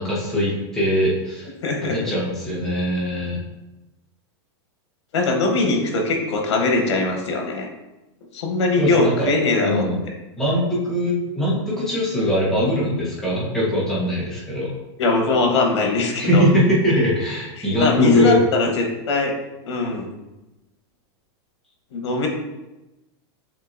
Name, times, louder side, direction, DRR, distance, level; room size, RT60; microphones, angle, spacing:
voice 1, 0.0-1.5 1.8-3.4 8.8-9.3 9.6-10.0 10.4-14.7 16.2-18.4, left 1 dB, 5° left, -7 dB, 0.9 m, -21 dB
voice 2, 1.6-2.1 5.1-7.7 8.3-9.9 15.0-16.5 17.6-19.3 19.6-20.1 21.9-22.3, left 3 dB, 90° left, 3 dB, 1.0 m, -21 dB
7.3 x 2.7 x 2.6 m, 1.0 s
supercardioid pair, 175°, 14 cm